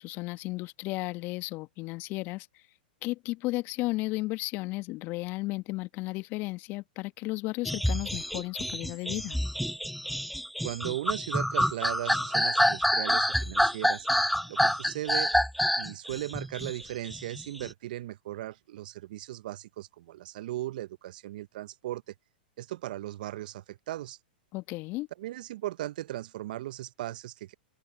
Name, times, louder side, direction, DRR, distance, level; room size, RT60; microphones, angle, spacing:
voice 1, 0.0-2.5 3.0-9.4 24.5-25.1, left 21 dB, 40° left, 1.5 m, -34 dB
sound 1, 7.6-17.7, equal, ahead, 0.7 m, -27 dB
voice 2, 10.6-14.1 14.5-15.3 15.8-22.1 22.6-24.2 25.2-27.5, right 15 dB, 60° right, 1.0 m, -37 dB
hypercardioid pair, 105°, 5 cm